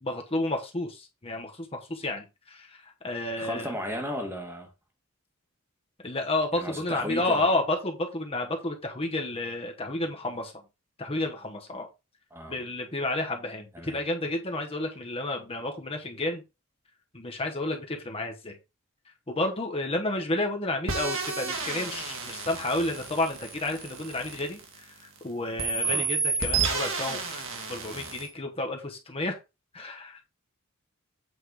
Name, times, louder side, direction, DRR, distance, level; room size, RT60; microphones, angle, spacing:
voice 1, 0.0-3.7 6.0-10.5 11.0-11.9 12.5-16.4 17.1-18.6 19.3-29.4 29.7-30.3, left 2 dB, 25° left, 1.1 m, -31 dB
voice 2, 3.4-4.7 6.5-7.5 12.3-12.6 13.7-14.0 25.8-26.1, equal, 10° right, 1.5 m, -35 dB
sound 1, 20.9-25.2 25.6-28.3, right 4 dB, 60° right, 2.2 m, -31 dB
8.3 x 4.2 x 4.8 m
head